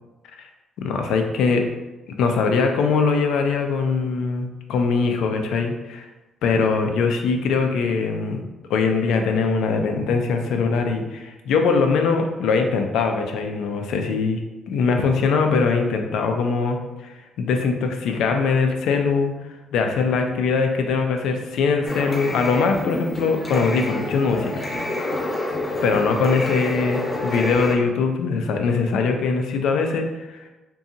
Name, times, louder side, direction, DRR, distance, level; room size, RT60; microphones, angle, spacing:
voice 1, 0.8-1.6 2.2-6.1 6.4-8.4 8.7-14.4 14.7-16.8 17.0-19.3 19.7-24.6 25.8-30.4, left 4 dB, 80° left, 4 dB, 0.3 m, -22 dB
sound 1, 21.9-27.8, left 2 dB, 40° left, 0.7 m, -28 dB
2.7 x 2.2 x 2.6 m, 1.1 s
cardioid pair, 90°, 0 cm